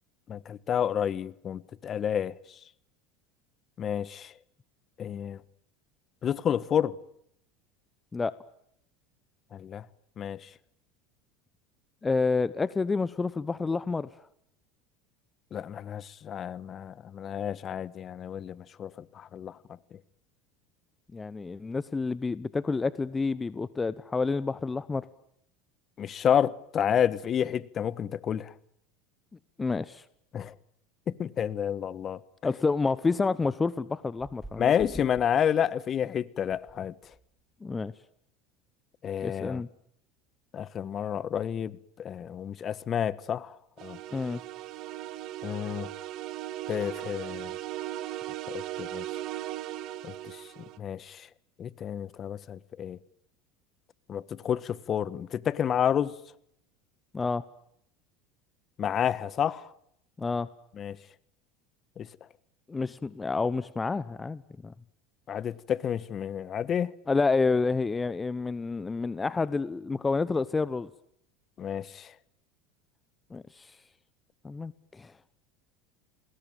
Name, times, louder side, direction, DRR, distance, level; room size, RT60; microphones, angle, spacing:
voice 1, 0.3-2.3 3.8-4.3 5.0-5.4 6.2-6.9 9.5-9.8 10.2-10.5 15.5-19.6 26.0-28.5 30.3-30.5 31.1-32.2 34.6-36.9 39.0-39.6 40.5-43.6 43.8-44.0 45.4-45.9 46.7-47.6 48.5-49.0 50.0-50.4 50.8-51.3 51.6-53.0 54.1-56.1 58.8-59.7 60.8-61.0 62.0-62.1 65.3-66.9 71.6-72.1, left 9 dB, 40° left, 1.4 m, -30 dB
voice 2, 12.0-14.1 21.1-25.1 29.6-30.0 32.4-34.7 37.6-37.9 39.2-39.7 44.1-44.4 57.1-57.4 60.2-60.5 62.7-64.7 67.1-70.9 73.3-73.8 74.4-75.1, left 4 dB, 20° left, 1.0 m, -29 dB
sound 1, 34.1-35.3 36.5-36.8 37.0-37.3, right 1 dB, 5° right, 6.3 m, -47 dB
sound 2, 43.8-50.8, right 14 dB, 55° right, 2.0 m, -38 dB
29.5 x 21.0 x 9.1 m
hypercardioid pair, 90°, 0 cm